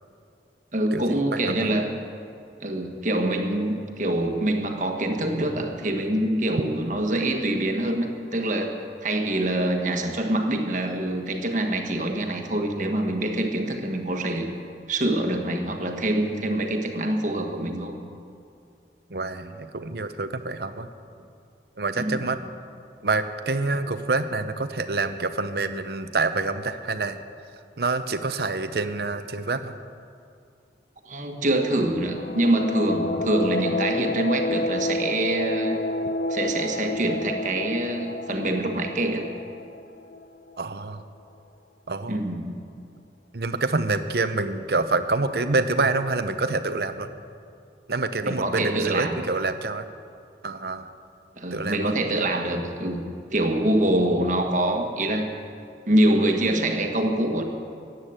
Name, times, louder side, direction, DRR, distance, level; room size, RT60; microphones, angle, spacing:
voice 1, 0.7-1.9 2.6-14.5 14.9-18.0 21.9-22.3 31.0-35.8 36.3-39.3 42.1-42.6 48.2-49.2 51.4-55.3 55.8-57.4, right 1 dB, 45° right, 3 dB, 1.5 m, -25 dB
voice 2, 1.3-1.7 19.1-20.9 21.8-22.4 23.0-27.2 27.8-29.8 40.6-41.0 41.9-42.2 43.3-47.1 47.9-49.8 50.4-50.9 51.5-51.9, right 3 dB, 65° right, 10 dB, 0.8 m, -27 dB
sound 1, 31.9-40.5, left 2 dB, 55° left, 0.6 m, -30 dB
14.5 x 9.4 x 8.8 m, 2.4 s
head